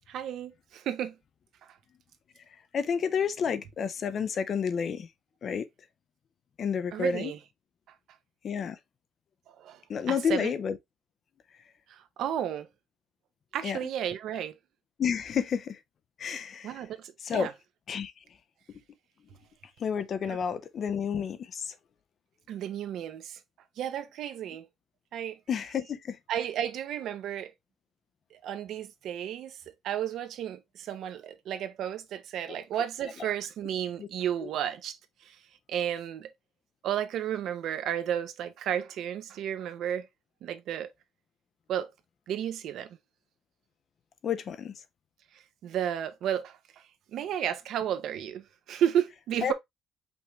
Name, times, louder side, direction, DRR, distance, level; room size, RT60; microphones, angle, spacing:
voice 1, 0.1-1.1 6.9-7.4 9.6-9.8 10.1-10.5 11.9-12.7 13.5-14.6 16.6-17.5 20.2-20.4 22.5-23.4 23.8-24.7 25.1-25.4 26.3-27.5 28.3-29.6 29.8-35.0 35.2-35.4 35.7-36.3 36.8-40.1 40.4-40.9 41.7-41.9 42.3-42.9 45.6-46.8 47.1-49.5, right 10 dB, 55° right, 0.7 m, -32 dB
voice 2, 2.7-5.1 5.4-5.6 6.6-7.3 8.4-8.8 9.9-10.7 13.6-13.8 15.0-15.8 16.2-16.7 17.2-17.5 17.9-18.1 19.8-21.7 25.5-26.2 34.0-34.1 44.2-44.7 49.4-49.5, left 7 dB, 35° left, 0.5 m, -30 dB
5.2 x 3.2 x 2.9 m
cardioid pair, 170°, 0 cm